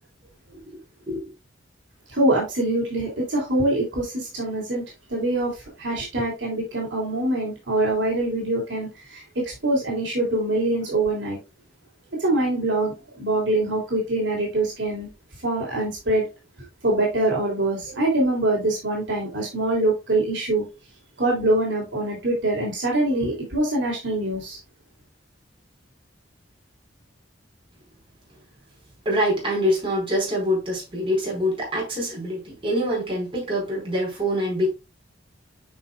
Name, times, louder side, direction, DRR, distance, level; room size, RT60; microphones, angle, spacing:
voice 1, 2.1-4.8 5.1-11.4 12.2-15.1 15.4-16.3 16.8-20.6 21.2-24.6, right 2 dB, 65° right, 3.3 m, -24 dB
voice 2, 29.0-34.7, equal, 30° right, 4.6 m, -25 dB
9.7 x 5.4 x 2.4 m
head